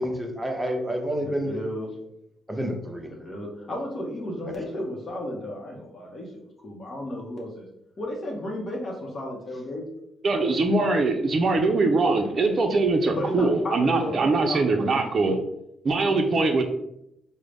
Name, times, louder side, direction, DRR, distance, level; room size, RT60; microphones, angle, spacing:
voice 1, 0.0-1.6 2.5-3.1 4.7-4.8, equal, 5° right, 2 dB, 0.7 m, -29 dB
voice 2, 1.2-2.0 3.1-7.7 8.0-9.9 13.1-15.1, left 1 dB, 40° left, -1 dB, 0.8 m, -34 dB
voice 3, 10.2-15.4 15.8-16.6, right 3 dB, 45° right, 3 dB, 0.4 m, -22 dB
3.7 x 2.1 x 3.3 m, 0.81 s
cardioid pair, 90°, 0 cm